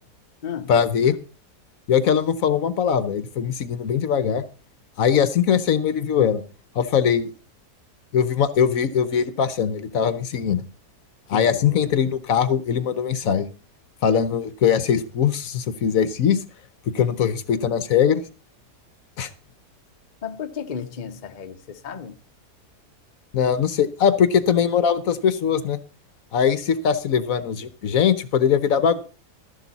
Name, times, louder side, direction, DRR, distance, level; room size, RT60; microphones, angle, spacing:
voice 1, 0.7-1.2 1.9-4.4 5.0-6.4 6.7-7.3 8.1-10.6 11.3-13.5 14.0-16.4 16.9-18.2 19.2-19.3 23.3-25.8 26.3-29.0, left 7 dB, 65° left, 1.2 m, -21 dB
voice 2, 11.3-11.9 20.2-22.2, left 7 dB, 35° left, 0.8 m, -34 dB
12.5 x 11.5 x 4.1 m
omnidirectional pair, 1.6 m